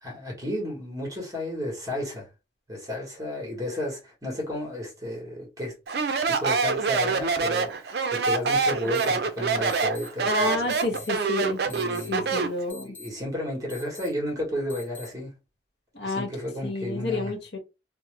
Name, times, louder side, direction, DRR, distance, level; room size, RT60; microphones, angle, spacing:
voice 1, 0.0-2.3 2.7-5.7 6.3-10.6 10.9-11.0 11.6-12.5 12.8-15.3 16.0-17.3, left 1 dB, 20° right, 1.3 m, -33 dB
Speech, 5.9-12.6, right 4 dB, 60° right, 0.4 m, -25 dB
sound 1, 8.9-9.1 9.7-10.1 10.7-11.1 11.7-12.1 12.7-13.1 13.7-14.1 14.7-15.1, left 3 dB, 10° left, 0.9 m, -44 dB
voice 2, 10.3-11.6 12.1-12.9 15.9-16.3 16.6-17.6, left 2 dB, 75° left, 1.0 m, -29 dB
2.8 x 2.1 x 3.1 m
head